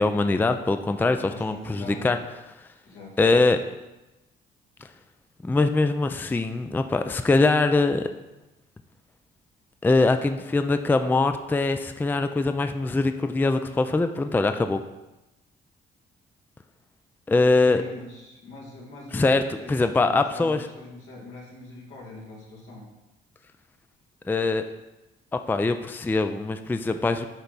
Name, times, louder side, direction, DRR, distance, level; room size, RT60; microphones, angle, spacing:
voice 1, 0.0-2.2 3.2-3.6 5.4-8.0 9.8-14.8 17.3-17.8 19.1-19.4 19.7-20.6 24.3-24.6 25.5-27.3, left 3 dB, 10° left, 8 dB, 0.4 m, -22 dB
voice 2, 1.3-2.3 2.6-3.2 17.5-22.9, left 2 dB, 80° left, -3 dB, 2.1 m, -43 dB
9.9 x 3.4 x 4.0 m, 1.0 s
cardioid pair, 90°, 20 cm